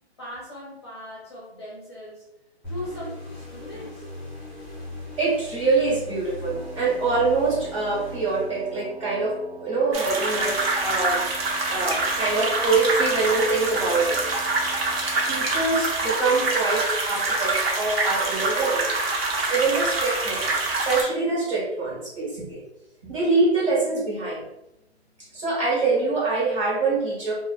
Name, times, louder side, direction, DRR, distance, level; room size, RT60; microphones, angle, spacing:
voice 1, 0.2-2.3 2.7-4.1, left 1 dB, 25° left, -7 dB, 0.5 m, -39 dB
sound 1, 2.6-9.1, left 1 dB, 5° right, 1.0 m, -39 dB
voice 2, 5.2-11.2 11.7-14.2 15.3-18.8 19.5-22.6 23.1-24.4 25.3-27.3, right 3 dB, 30° right, -7 dB, 1.1 m, -24 dB
Wind instrument woodwind instrument, 6.4-15.7, right 2 dB, 75° right, 1.0 m, -44 dB
sound 2, 9.9-21.0, right 2 dB, 60° right, 0.7 m, -25 dB
2.4 x 2.4 x 2.2 m, 0.86 s
hypercardioid pair, 160°, 33 cm